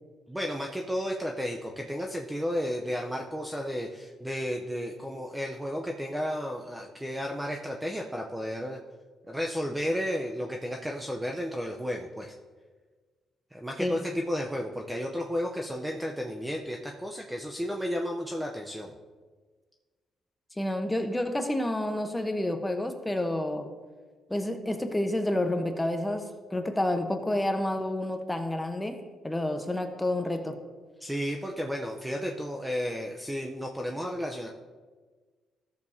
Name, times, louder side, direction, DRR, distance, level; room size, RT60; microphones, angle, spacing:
voice 1, 0.3-8.8 9.3-12.3 13.5-19.0 31.0-34.5, equal, 5° right, 1 dB, 0.7 m, -33 dB
voice 2, 20.6-23.7 24.3-30.6, left 1 dB, 10° left, 6 dB, 0.9 m, -29 dB
14.0 x 6.9 x 2.7 m, 1.4 s
cardioid pair, 90°, 0 cm